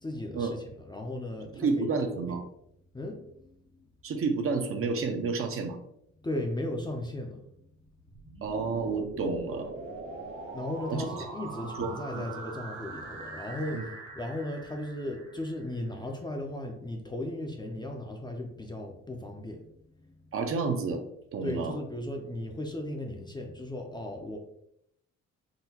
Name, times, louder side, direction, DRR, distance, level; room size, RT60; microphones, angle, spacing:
voice 1, 0.0-2.3 2.9-3.6 6.2-7.4 10.2-19.6 20.0-20.2 21.4-24.4, left 1 dB, 15° left, 2 dB, 0.4 m, -36 dB
voice 2, 1.5-2.4 4.0-5.8 8.4-9.7 10.9-11.2 11.8-12.3 13.7-13.8 20.3-21.0 21.3-21.8, right 4 dB, 45° right, 6 dB, 0.5 m, -30 dB
sound 1, 8.0-15.9, right 3 dB, 80° right, 0.9 m, -42 dB
3.8 x 2.2 x 2.8 m, 0.74 s
cardioid pair, 90°, 30 cm